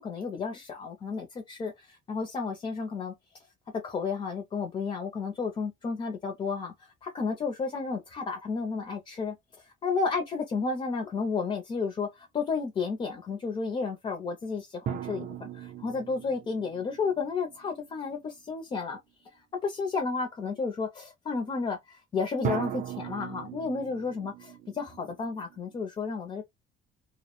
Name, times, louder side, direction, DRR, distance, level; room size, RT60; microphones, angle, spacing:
voice 1, 0.0-3.1 3.8-19.0 19.6-24.3 24.8-26.4, left 4 dB, 25° left, 0.4 m, -32 dB
sound 1, 14.9-18.2 22.4-25.8, right 10 dB, 40° right, 0.4 m, -38 dB
2.1 x 2.0 x 2.9 m
cardioid pair, 150°, 20 cm